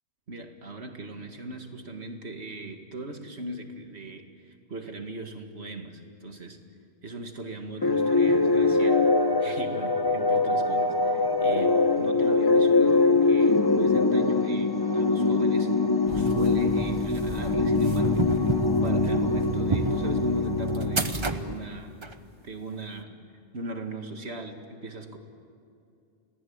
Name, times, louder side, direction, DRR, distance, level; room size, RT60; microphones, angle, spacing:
voice 1, 0.3-6.6 7.0-9.0 9.4-15.7 16.1-18.5 18.8-22.0 22.4-23.2 23.5-25.2, right 2 dB, 75° right, 5 dB, 2.3 m, -38 dB
sound 1, 7.8-21.5, left 3 dB, 25° left, 0.8 m, -23 dB
sound 2, 16.1-22.1, right 3 dB, 25° right, 1.0 m, -30 dB
29.5 x 19.0 x 8.8 m, 2.5 s
omnidirectional pair, 1.1 m